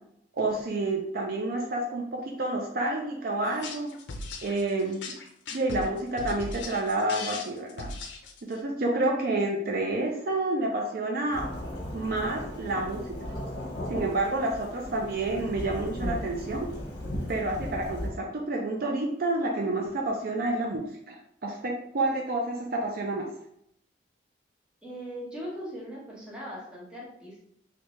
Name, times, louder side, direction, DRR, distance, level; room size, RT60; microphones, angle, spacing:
voice 1, 0.3-3.9 4.4-5.0 5.5-7.9 8.4-11.5 11.9-13.1 13.9-16.7 17.3-21.2 21.4-23.3, right 2 dB, 50° right, 0 dB, 0.4 m, -29 dB
sound 1, 3.5-8.6, left 3 dB, 80° left, 0.5 m, -38 dB
Thunderstorm / Rain, 11.3-18.1, left 1 dB, 60° left, 0.9 m, -36 dB
voice 2, 24.8-27.4, equal, 5° right, -6 dB, 1.0 m, -39 dB
3.3 x 2.7 x 3.1 m, 0.75 s
head